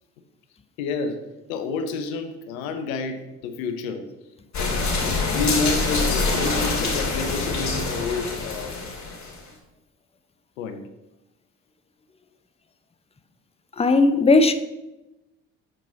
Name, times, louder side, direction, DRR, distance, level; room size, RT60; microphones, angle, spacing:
voice 1, 0.8-1.2 1.5-4.0 4.5-8.8 10.6-10.8, left 4 dB, 85° left, 0.7 m, -29 dB
sound 1, 4.5-9.4, left 3 dB, 45° left, 2.6 m, -25 dB
voice 2, 13.8-14.5, left 3 dB, 15° left, 0.6 m, -16 dB
7.4 x 4.6 x 3.9 m
hypercardioid pair, 55°, 40 cm